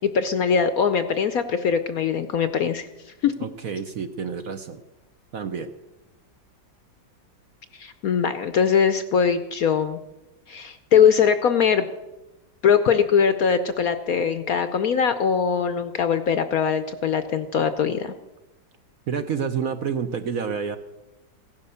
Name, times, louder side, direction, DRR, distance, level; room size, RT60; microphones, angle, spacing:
voice 1, 0.0-2.9 3.2-3.3 7.7-10.0 10.5-11.9 12.6-18.1, left 7 dB, 65° left, 10 dB, 1.0 m, -21 dB
voice 2, 3.4-4.8 5.3-5.7 19.1-20.8, right 6 dB, 60° right, 8 dB, 1.0 m, -29 dB
16.5 x 11.0 x 6.9 m, 1.0 s
omnidirectional pair, 2.1 m